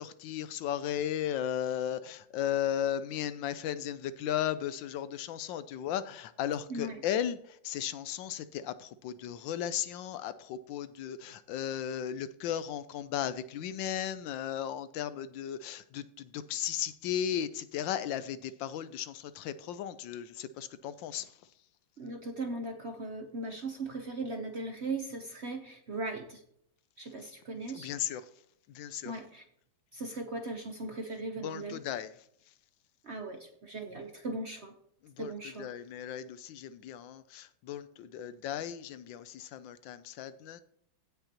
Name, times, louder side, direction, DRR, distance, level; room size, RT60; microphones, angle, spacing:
voice 1, 0.0-7.4 7.6-21.3 27.7-28.2 28.7-29.1 31.4-32.1 35.2-35.3 35.6-40.6, left 10 dB, 75° left, 1.3 m, -35 dB
voice 2, 6.7-7.0 22.0-26.4 27.0-27.9 29.0-29.4 29.9-31.8 33.0-34.7 35.2-35.7, right 2 dB, 50° right, 0.8 m, -38 dB
16.5 x 5.7 x 2.9 m
omnidirectional pair, 2.1 m